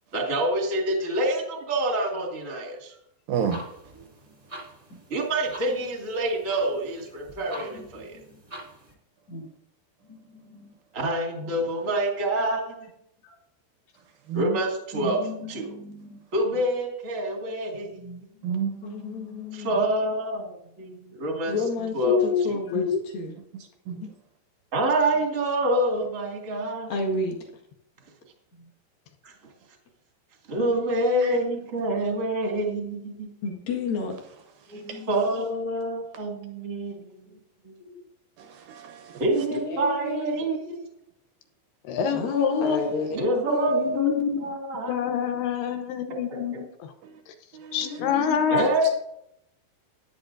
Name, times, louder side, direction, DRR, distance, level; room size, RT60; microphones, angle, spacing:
voice 1, 0.1-2.9 5.1-8.2 10.9-12.7 14.3-15.2 15.5-15.7 16.3-18.0 19.5-21.5 21.9-22.2 22.5-22.6 24.7-26.9 29.2-29.3 30.5-33.3 35.1-37.3 37.6-37.7 39.2-40.9 43.1-45.0 46.3-46.4 48.5-48.9, right 1 dB, 40° right, 1.1 m, -27 dB
sound 1, 3.3-8.9, equal, 15° right, 1.1 m, -45 dB
voice 2, 3.3-3.6 14.3-14.6 14.9-15.1 18.4-19.5 23.9-24.0 31.2-31.4 34.7-35.0 38.4-39.2 47.0-47.1 47.5-48.3, right 7 dB, 80° right, 2.1 m, -32 dB
voice 3, 4.6-5.0 5.7-5.9 7.3-8.4 9.3-9.5 10.0-10.7 13.2-13.4 14.9-16.2 17.8-18.5 20.9-21.4 22.7-22.8 28.5-28.7 31.7-31.9 34.7-35.1 37.2-37.4 37.8-38.0 40.5-40.8 48.0-48.7, left 2 dB, 40° left, 2.8 m, -42 dB
voice 4, 18.8-19.8 21.5-21.9 22.2-22.9 23.1-23.3 24.0-24.1 26.9-27.4 33.4-34.1 39.5-40.4 42.1-43.1 43.5-44.5 47.8-48.2, left 3 dB, 60° left, 3.1 m, -30 dB
voice 5, 22.0-22.4 22.7-23.0 41.9-42.8 44.0-44.4 44.9-46.9 47.7-48.6, left 7 dB, 75° left, 2.6 m, -25 dB
14.0 x 10.5 x 2.7 m
omnidirectional pair, 5.3 m